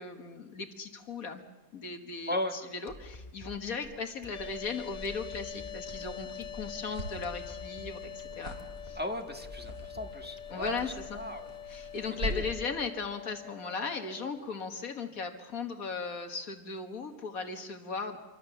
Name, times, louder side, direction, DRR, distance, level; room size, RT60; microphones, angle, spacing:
voice 1, 0.0-1.4 1.7-8.6 8.8-9.0 10.5-11.2 11.6-18.2, left 4 dB, 75° left, 6 dB, 2.0 m, -37 dB
sound 1, 2.9-11.5, left 2 dB, 30° left, 2.0 m, -50 dB
sound 2, 4.3-14.4, left 9 dB, 60° left, 1.5 m, -45 dB
sound 3, 4.6-12.7, equal, 65° right, 4.2 m, -43 dB
voice 2, 9.0-10.8 11.1-11.4 12.3-12.5, left 1 dB, 5° right, 4 dB, 1.4 m, -36 dB
26.5 x 23.5 x 6.9 m, 1.1 s
omnidirectional pair, 1.5 m